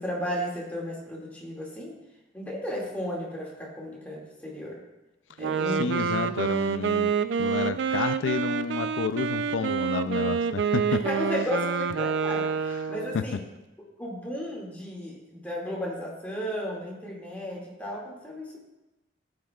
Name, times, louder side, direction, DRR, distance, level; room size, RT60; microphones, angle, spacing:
voice 1, 0.0-1.9 2.3-4.8 5.4-6.1 10.9-13.4 14.0-18.6, equal, 10° left, -4 dB, 2.1 m, -34 dB
Wind instrument woodwind instrument, 5.4-13.3, right 6 dB, 65° right, 0.4 m, -27 dB
voice 2, 5.7-7.1 7.4-11.0 12.7-12.8 13.1-13.4, left 5 dB, 85° left, 11 dB, 0.4 m, -30 dB
13.5 x 8.5 x 2.3 m, 1.0 s
head